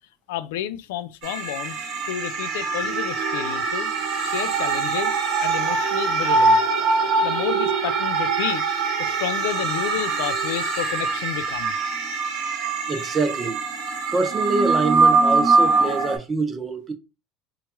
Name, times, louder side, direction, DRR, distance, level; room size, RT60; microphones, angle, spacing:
voice 1, 0.3-1.8 2.1-3.9 4.2-5.2 5.4-6.6 7.2-8.6 9.0-11.7, left 12 dB, 90° left, 0.3 m, -30 dB
sound 1, 1.2-16.2, right 4 dB, 70° right, 0.8 m, -23 dB
voice 2, 12.9-13.6 14.1-16.9, right 3 dB, 25° right, 0.7 m, -25 dB
3.0 x 2.3 x 2.9 m
supercardioid pair, 105°, 0 cm